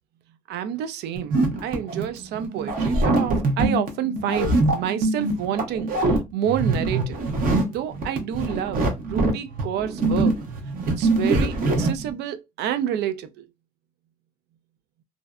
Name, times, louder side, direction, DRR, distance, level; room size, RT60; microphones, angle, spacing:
voice 1, 0.5-7.2 7.7-10.4 11.0-13.5, right 10 dB, 70° right, 0.4 m, -29 dB
sound 1, 1.2-12.1, right 2 dB, 55° right, 0.8 m, -23 dB
2.5 x 2.1 x 2.3 m
supercardioid pair, 85°, 18 cm